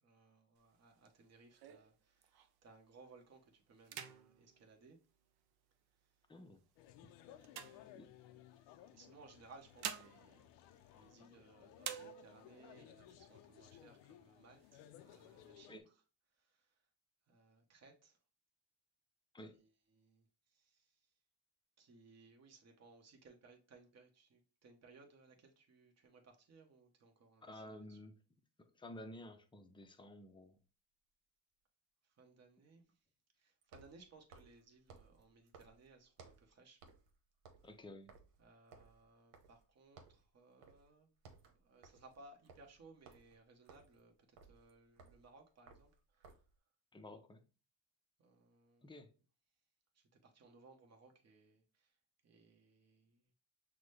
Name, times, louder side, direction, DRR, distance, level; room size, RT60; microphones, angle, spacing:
voice 1, 0.0-5.0 6.0-6.1 7.1-8.4 8.9-10.5 10.9-16.0 16.3-16.8 17.3-18.2 19.5-21.1 21.8-28.0 32.0-33.0 33.3-36.8 38.4-41.1 41.5-46.4 48.2-49.0 49.9-52.0 52.2-53.3, right 3 dB, 35° right, 1.1 m, -63 dB
sound 1, 0.6-2.7 3.2-3.4 3.8-5.7 6.4-8.5 9.4-11.4 11.8-12.6 13.1-13.2 13.5-14.1 14.6-15.5, right 9 dB, 60° right, 0.7 m, -50 dB
voice 2, 6.3-6.6 7.9-8.1 15.7-15.8 19.3-19.6 27.4-28.1 28.8-30.6 37.6-38.1 46.9-47.4 48.8-49.1, left 1 dB, 10° left, 0.6 m, -52 dB
sound 2, 6.8-15.8, left 11 dB, 85° left, 0.6 m, -60 dB
sound 3, 30.3-30.4 33.6-36.5 36.8-37.1 37.4-39.7 40.0-40.3 40.6-40.9 41.2-46.6, right 4 dB, 85° right, 1.1 m, -62 dB
6.0 x 2.2 x 3.2 m
cardioid pair, 100°, 43 cm